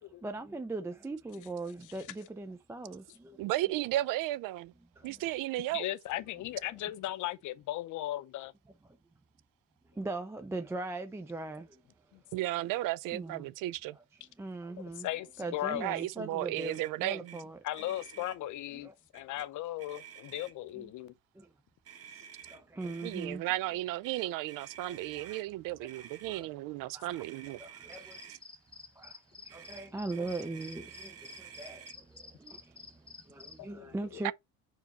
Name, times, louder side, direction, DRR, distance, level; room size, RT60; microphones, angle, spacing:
voice 1, 0.2-3.5 5.0-5.2 8.8-9.0 9.9-11.8 13.1-13.5 14.4-15.1 15.4-17.6 17.9-18.0 18.7-18.9 20.8-20.9 21.3-21.5 22.1-23.4 24.9-25.4 26.3-26.5 26.9-27.2 27.6-28.2 29.0-29.2 29.4-34.3, right 2 dB, 10° right, 0.4 m, -40 dB
voice 2, 3.4-4.7 5.0-5.9 12.3-14.0 15.7-17.4 22.8-27.6 34.2-34.3, right 16 dB, 75° right, 0.5 m, -34 dB
voice 3, 5.7-8.5 12.1-12.2 14.8-15.9 17.6-21.1 33.6-34.2, left 14 dB, 60° left, 0.7 m, -37 dB
Motor vehicle (road), 16.5-16.9 17.2-17.4 17.7-18.4 19.1-19.5 19.8-20.7 21.8-23.3 24.0-25.5 25.9-26.4 27.1-28.4 29.5-32.0, right 9 dB, 45° right, 1.2 m, -51 dB
sound 1, 27.9-33.6, left 4 dB, 15° left, 0.8 m, -51 dB
5.4 x 4.7 x 4.1 m
cardioid pair, 155°, 33 cm